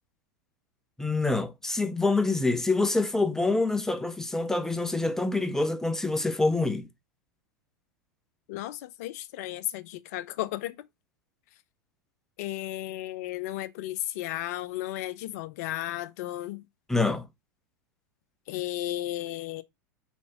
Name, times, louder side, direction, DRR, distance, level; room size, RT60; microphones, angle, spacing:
voice 1, 1.0-6.9 16.9-17.3, left 3 dB, 5° left, 0.7 m, -26 dB
voice 2, 8.5-10.9 12.4-16.6 18.5-19.6, left 15 dB, 55° left, 0.6 m, -34 dB
4.5 x 4.1 x 5.6 m
figure-of-eight pair, 90°, 10 cm